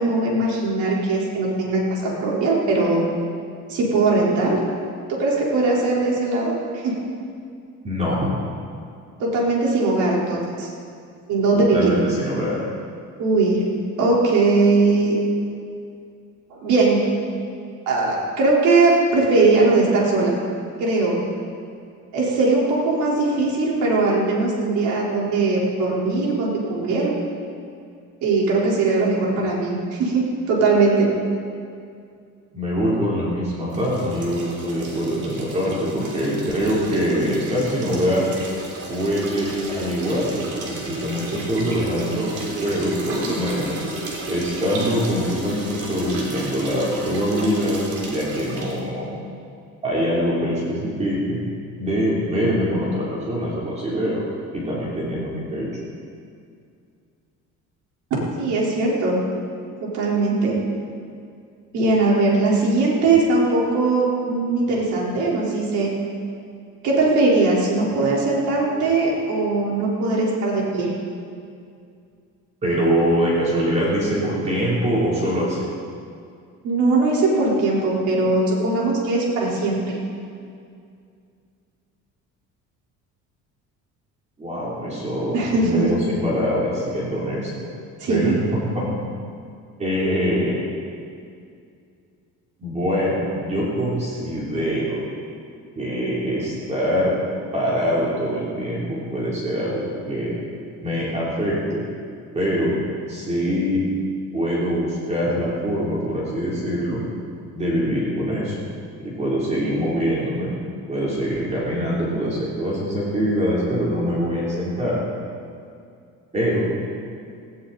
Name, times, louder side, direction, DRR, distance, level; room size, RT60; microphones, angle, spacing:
voice 1, 0.0-3.0 3.7-4.6 5.1-6.9 9.2-10.7 11.3-11.9 13.2-13.6 14.0-15.2 16.5-17.0 17.9-20.3 20.8-21.2 22.1-27.1 28.2-31.1 58.4-59.2 59.8-60.6 61.7-65.9 66.8-70.9 76.6-80.0 85.3-85.8 88.0-88.3, right 3 dB, 70° right, -4 dB, 4.8 m, -20 dB
voice 2, 7.8-8.3 11.5-12.6 32.5-38.3 38.9-42.3 42.6-43.8 44.3-47.8 48.1-49.1 49.8-51.4 51.8-54.2 54.5-55.7 72.6-75.6 84.4-85.4 85.6-87.7 88.1-88.9 89.8-90.6 92.6-95.0 95.7-97.2 97.5-100.4 100.8-101.8 102.3-102.8 103.1-103.8 104.3-107.0 107.5-108.6 109.0-110.5 110.9-115.0 116.3-116.7, equal, 20° right, -6 dB, 3.9 m, -23 dB
sound 1, 33.7-48.8, right 2 dB, 50° right, 3.6 m, -33 dB
18.5 x 17.0 x 4.4 m, 2.3 s
cardioid pair, 160°, 30 cm